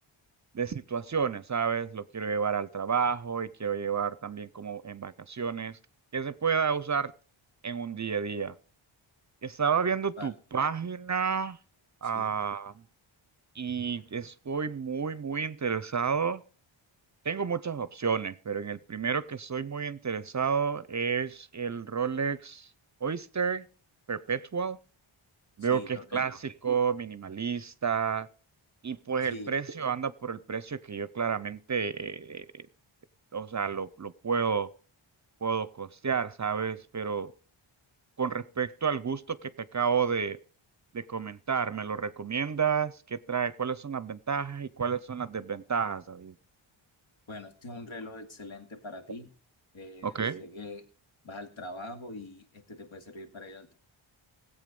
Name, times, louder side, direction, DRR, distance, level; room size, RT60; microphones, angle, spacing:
voice 1, 0.5-5.8 6.1-7.1 7.6-8.5 9.4-11.6 12.0-12.7 13.6-16.4 17.2-22.7 23.0-23.7 24.1-24.8 25.6-28.3 28.8-32.7 33.3-34.7 35.4-37.3 38.2-40.4 40.9-46.3 50.0-50.4, right 6 dB, 35° right, 17 dB, 0.6 m, -31 dB
voice 2, 12.0-12.3 25.6-26.4 29.2-29.5 47.3-49.3 49.7-50.8 51.2-53.7, left 2 dB, 70° left, 5 dB, 2.4 m, -43 dB
17.0 x 8.3 x 5.3 m, 0.42 s
wide cardioid pair, 110°, 49 cm